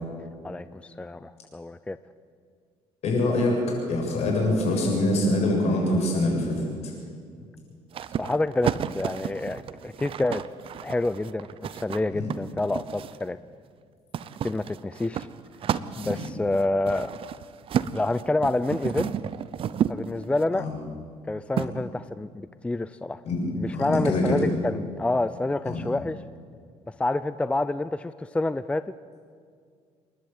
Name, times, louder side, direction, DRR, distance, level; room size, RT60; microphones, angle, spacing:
voice 1, 0.4-2.0 8.2-10.4 10.8-11.5 11.7-13.4 14.4-15.3 16.0-17.1 17.9-19.1 19.9-20.7 21.3-23.2 23.6-26.2 27.0-28.8, left 2 dB, 10° left, 14 dB, 0.4 m, -28 dB
voice 2, 3.0-6.9 12.1-12.3 16.0-16.2 20.5-20.7 23.2-24.4 25.7-25.8, left 1 dB, 65° left, 0 dB, 7.4 m, -25 dB
sound 1, 7.9-13.3 14.1-20.5 21.6-21.7, right 9 dB, 50° right, 0.7 m, -31 dB
28.0 x 11.5 x 8.8 m, 2.1 s
cardioid pair, 115°, 12 cm